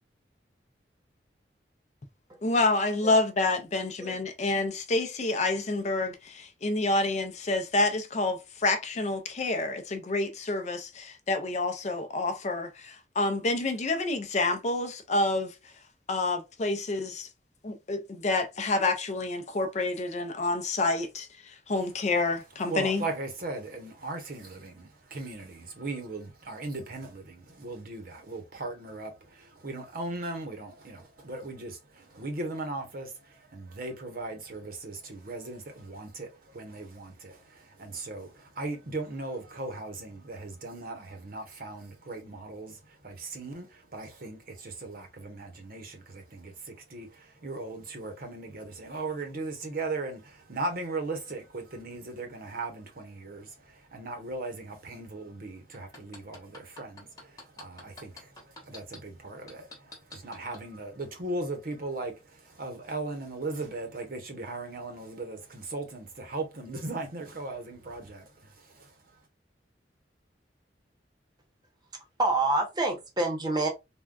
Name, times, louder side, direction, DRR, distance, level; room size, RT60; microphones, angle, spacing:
voice 1, 2.4-15.5 16.1-17.3 17.6-23.0, left 2 dB, 40° left, 0.5 m, -28 dB
voice 2, 22.7-68.9, right 2 dB, 55° right, 0.8 m, -38 dB
sound 1, 55.7-59.0 59.5-60.6 61.1-61.2, left 2 dB, 20° left, 1.1 m, -46 dB
voice 3, 72.2-73.7, right 2 dB, 25° right, 0.8 m, -27 dB
3.5 x 2.2 x 2.3 m
head